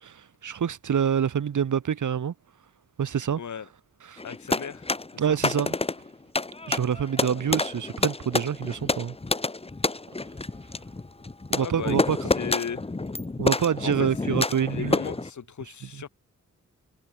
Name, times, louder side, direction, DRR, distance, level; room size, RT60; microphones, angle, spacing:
voice 1, 0.0-2.3 3.0-3.4 4.1-4.2 5.2-5.7 6.7-9.2 11.5-12.2 13.4-15.0, right 8 dB, 80° right, 1.8 m, -26 dB
voice 2, 3.4-3.7 4.2-5.4 7.3-7.5 11.6-12.8 13.8-14.4 14.7-16.1, left 7 dB, 75° left, 3.0 m, -36 dB
sound 1, 4.2-15.3, left 3 dB, 20° left, 1.8 m, -29 dB
wide cardioid pair, 180°, 30 cm